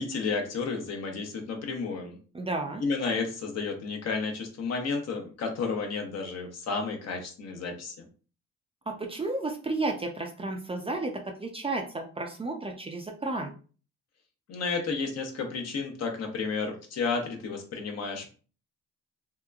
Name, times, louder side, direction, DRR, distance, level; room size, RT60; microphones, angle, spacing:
voice 1, 0.0-2.2 2.8-8.1 14.5-18.3, left 4 dB, 60° left, 3 dB, 0.8 m, -32 dB
voice 2, 2.3-2.8 8.9-13.5, right 2 dB, 20° right, 2 dB, 0.4 m, -32 dB
2.8 x 2.2 x 2.3 m, 0.38 s
cardioid pair, 90°, 30 cm